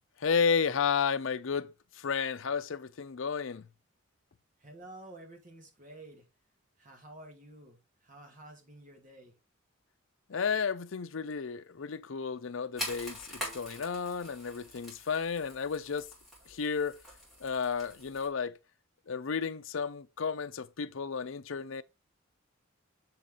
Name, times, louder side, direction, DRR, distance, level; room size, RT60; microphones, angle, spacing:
voice 1, 0.2-3.7 10.3-16.1 16.5-17.0 17.4-18.6 19.1-21.8, left 6 dB, 70° left, 0.5 m, -32 dB
voice 2, 4.6-6.3 6.8-9.3, right 1 dB, 40° right, 2.3 m, -51 dB
sound 1, 12.8-18.3, equal, ahead, 4.2 m, -44 dB
7.3 x 5.8 x 3.8 m
head